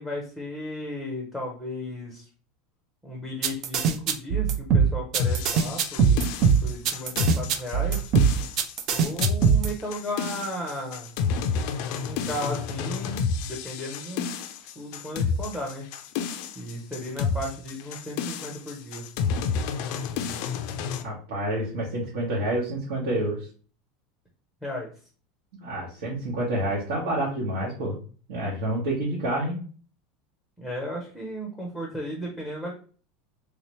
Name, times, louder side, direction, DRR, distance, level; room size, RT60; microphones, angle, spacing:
voice 1, 0.0-2.3 3.0-6.2 6.6-8.0 8.9-11.1 12.0-14.3 14.8-15.9 16.6-19.0 24.6-24.9 30.6-32.7, equal, ahead, -1 dB, 0.7 m, -35 dB
sound 1, 3.4-9.7, right 6 dB, 40° right, 0.4 m, -21 dB
sound 2, 5.2-21.0, left 5 dB, 55° left, 0.4 m, -30 dB
voice 2, 21.0-23.5 25.6-28.0 28.3-29.5, right 1 dB, 75° right, -6 dB, 1.2 m, -28 dB
3.3 x 2.8 x 3.0 m, 0.40 s
supercardioid pair, 160°, 0 cm